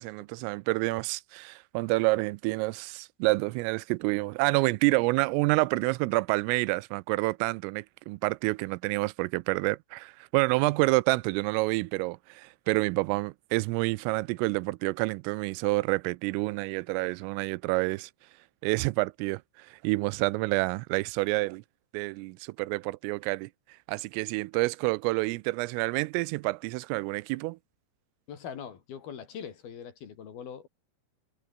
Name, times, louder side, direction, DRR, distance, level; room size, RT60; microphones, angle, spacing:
voice 1, 0.0-18.1 18.6-21.6 21.9-23.5 23.9-27.6, right 23 dB, 90° right, 3.3 m, -28 dB
voice 2, 28.3-30.7, left 7 dB, 55° left, 4.2 m, -42 dB
omnidirectional pair, 5.7 m